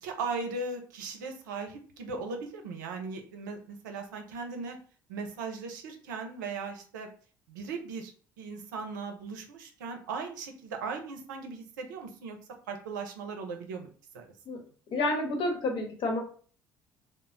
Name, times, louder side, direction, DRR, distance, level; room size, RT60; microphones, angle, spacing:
voice 1, 0.0-4.8 5.1-7.1 7.5-8.1 8.4-12.4 12.7-13.9 14.1-14.2, right 4 dB, 85° right, 4 dB, 0.5 m, -38 dB
voice 2, 14.9-16.2, left 2 dB, 55° left, 1 dB, 1.0 m, -29 dB
2.0 x 2.0 x 3.7 m, 0.42 s
hypercardioid pair, 60°, 10 cm